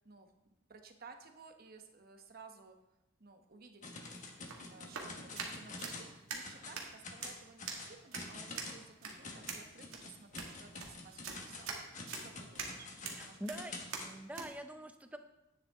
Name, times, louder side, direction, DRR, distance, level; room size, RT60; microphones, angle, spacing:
voice 1, 0.0-2.8 3.2-3.9 4.7-11.8 12.2-12.9 13.2-13.8, right 4 dB, 45° right, 5 dB, 1.0 m, -56 dB
sound 1, 3.8-6.1 6.4-6.8 7.0-14.1, left 3 dB, 40° left, 1.3 m, -48 dB
sound 2, 3.9-14.5, right 4 dB, 80° right, 1.9 m, -45 dB
voice 2, 13.2-13.7 14.0-15.2, right 1 dB, 5° right, 7 dB, 0.6 m, -45 dB
10.5 x 9.5 x 3.6 m, 0.92 s
head